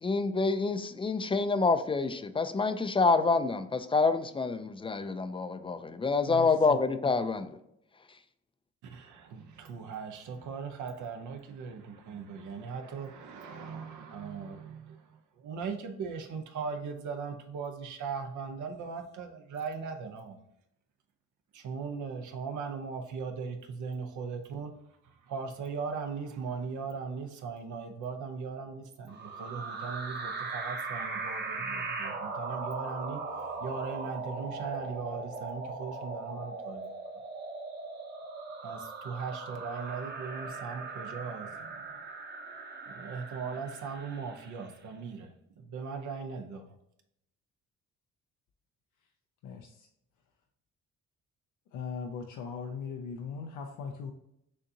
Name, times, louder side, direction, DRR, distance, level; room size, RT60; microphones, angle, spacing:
voice 1, 0.0-7.6, left 4 dB, 20° left, 0.3 m, -27 dB
voice 2, 6.3-6.8 49.4-49.9 51.7-54.1, left 6 dB, 85° left, 0.5 m, -39 dB
voice 3, 8.8-20.4 21.5-24.7 25.0-36.9 38.6-41.9 42.9-46.8, right 5 dB, 75° right, 0.7 m, -39 dB
sound 1, 29.1-44.8, right 3 dB, 35° right, 0.9 m, -39 dB
6.5 x 2.7 x 2.7 m
cardioid pair, 90°, 30 cm